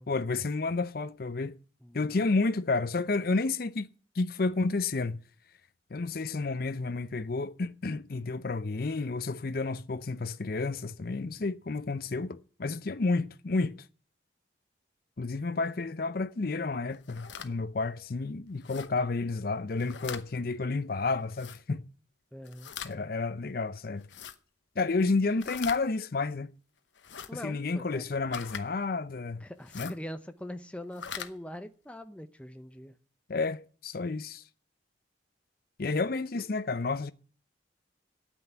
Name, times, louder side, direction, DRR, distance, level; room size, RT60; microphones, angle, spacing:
voice 1, 0.1-1.6 1.9-3.9 4.2-5.2 5.9-13.8 15.2-21.8 22.8-24.1 24.8-26.5 27.3-29.4 29.7-29.9 33.3-34.4 35.8-37.1, left 3 dB, 50° left, 0.5 m, -31 dB
voice 2, 1.8-2.3 22.3-22.7 27.3-28.0 29.4-33.0, left 1 dB, 5° left, 0.6 m, -43 dB
sound 1, 16.9-17.5 18.6-18.9 19.7-20.2 21.3-21.6 22.4-22.9 24.0-24.4 25.4-25.8 26.9-27.3 28.3-28.6 29.6-30.0 30.8-31.3, left 7 dB, 75° left, 1.0 m, -41 dB
9.1 x 8.2 x 9.4 m
head